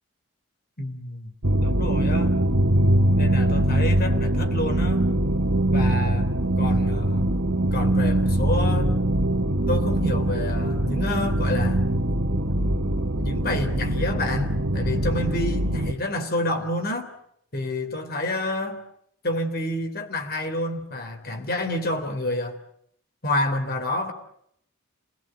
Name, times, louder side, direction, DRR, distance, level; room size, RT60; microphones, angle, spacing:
voice 1, 0.8-2.3 3.1-5.1 5.7-6.3 6.6-7.4 7.7-8.9 9.7-11.9 12.5-12.7 13.2-17.1 17.5-18.8 19.2-22.6 23.2-24.1, left 1 dB, 45° left, 3.6 m, -28 dB
sound 1, 1.4-15.9, right 1 dB, 60° right, 1.7 m, -22 dB
28.0 x 19.5 x 9.2 m
head